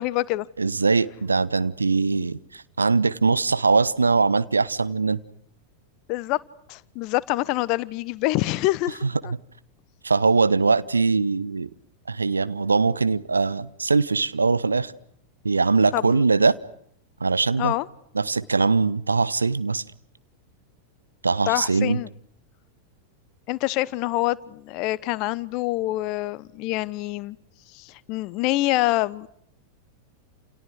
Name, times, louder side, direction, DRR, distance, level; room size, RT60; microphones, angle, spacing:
voice 1, 0.0-0.5 6.1-6.4 6.7-9.3 15.9-16.2 17.6-17.9 21.5-22.1 23.5-27.4 27.7-29.3, left 18 dB, 40° left, 1.1 m, -26 dB
voice 2, 0.6-5.2 9.3-9.4 10.0-11.7 12.1-14.9 15.4-16.6 17.2-17.7 18.1-19.8 21.2-22.0, right 4 dB, 75° right, 1.1 m, -21 dB
29.5 x 28.5 x 6.4 m
figure-of-eight pair, 90°, 0 cm